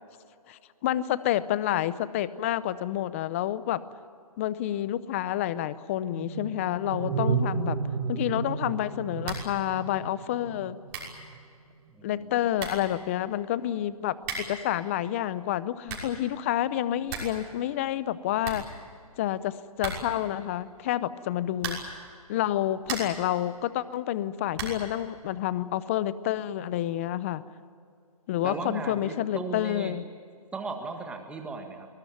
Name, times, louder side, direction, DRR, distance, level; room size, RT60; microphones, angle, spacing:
voice 1, 0.5-3.8 4.4-7.8 8.1-10.8 12.0-14.1 14.5-18.6 19.2-22.0 22.3-27.4 28.3-30.1, left 12 dB, 20° left, 17 dB, 0.7 m, -29 dB
sound 1, 6.0-11.4, right 5 dB, 40° right, 2.3 m, -32 dB
sound 2, 9.2-9.6 9.9-10.0 10.6-10.7 10.9-11.2 12.2-12.3 12.6-12.9 14.2-14.7 15.6-16.2 16.6-16.7 16.9-17.4 17.7-17.8 18.1-18.2 18.4-19.2 19.8-20.3 21.5-22.0 22.5-23.3 24.5-24.9, right 4 dB, 25° right, 6.0 m, -37 dB
voice 2, 12.0-12.3 28.4-30.0 30.5-31.9, right 3 dB, 5° right, 4 dB, 1.7 m, -36 dB
23.0 x 20.5 x 9.3 m, 2.3 s
hypercardioid pair, 155°, 19 cm